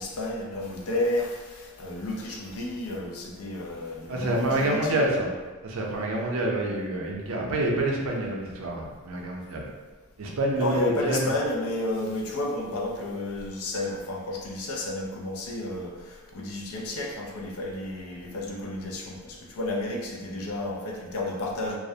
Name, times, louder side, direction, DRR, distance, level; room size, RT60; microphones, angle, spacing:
voice 1, 0.0-5.0 10.6-21.8, left 1 dB, 80° left, -1 dB, 0.5 m, -31 dB
voice 2, 4.1-5.3 5.6-9.6 10.2-11.3, right 1 dB, 70° right, -1 dB, 0.5 m, -27 dB
2.3 x 2.0 x 2.6 m, 1.3 s
head